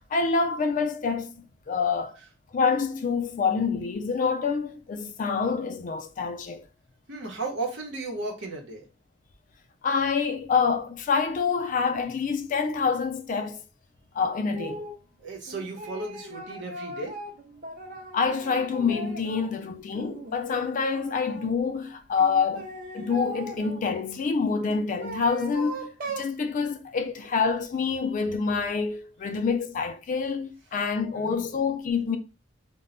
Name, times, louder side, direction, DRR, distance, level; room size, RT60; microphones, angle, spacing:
voice 1, 0.1-2.1 2.5-6.7 9.8-13.6 14.1-14.9 18.1-22.6 22.9-32.2, left 5 dB, 45° left, 0.3 m, -27 dB
voice 2, 7.1-8.9 15.2-17.2 30.7-30.8 31.2-31.5, right 3 dB, 80° right, 0.8 m, -35 dB
sound 1, 14.5-15.0 15.5-19.5 19.9-21.5 22.2-23.8 24.6-26.3, right 2 dB, 50° right, 0.5 m, -39 dB
2.2 x 2.1 x 3.6 m
head